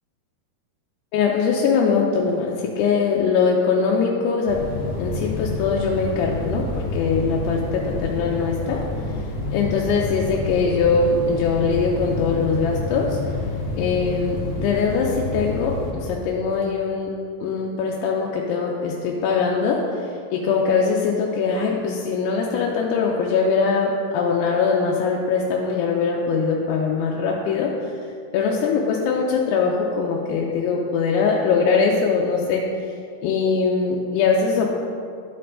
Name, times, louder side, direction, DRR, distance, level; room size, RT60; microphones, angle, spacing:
voice 1, 1.1-4.6 5.0-8.8 9.5-13.2 13.8-17.1 17.4-20.1 20.3-27.9 28.3-32.7 33.2-34.7, left 5 dB, 90° left, -2 dB, 2.7 m, -22 dB
sound 1, 4.5-15.9, left 2 dB, 70° left, 2.2 m, -29 dB
11.5 x 4.6 x 3.7 m, 2.4 s
omnidirectional pair, 4.7 m